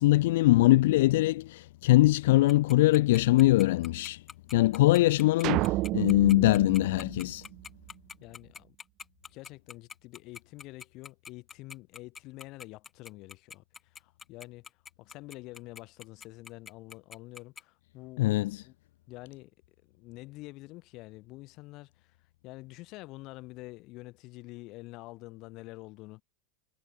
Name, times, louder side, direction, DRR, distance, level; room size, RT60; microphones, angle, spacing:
voice 1, 0.0-4.2 4.5-7.4 18.2-18.6, left 17 dB, 70° left, 0.9 m, -22 dB
Tick-tock, 2.5-17.6, left 6 dB, 20° left, 6.2 m, -45 dB
sound 1, 5.4-7.9, right 19 dB, 45° right, 2.1 m, -31 dB
voice 2, 8.2-8.8 9.3-14.7 15.0-18.7 19.1-19.5 19.9-22.2 22.4-26.2, left 21 dB, 45° left, 3.7 m, -47 dB
supercardioid pair, 130°, 0 cm